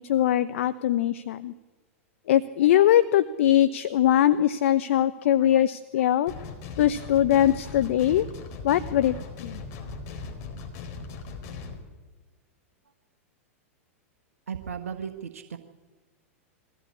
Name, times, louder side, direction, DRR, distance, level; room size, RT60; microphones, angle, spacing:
voice 1, 0.0-1.5 2.3-6.3 6.8-8.3 8.6-9.6, left 11 dB, 65° left, 13 dB, 0.8 m, -22 dB
sound 1, 6.3-11.8, left 4 dB, 45° left, 4.2 m, -38 dB
voice 2, 14.5-15.6, right 7 dB, 80° right, 6 dB, 1.4 m, -35 dB
22.5 x 15.5 x 8.6 m, 1.3 s
hypercardioid pair, 105°, 8 cm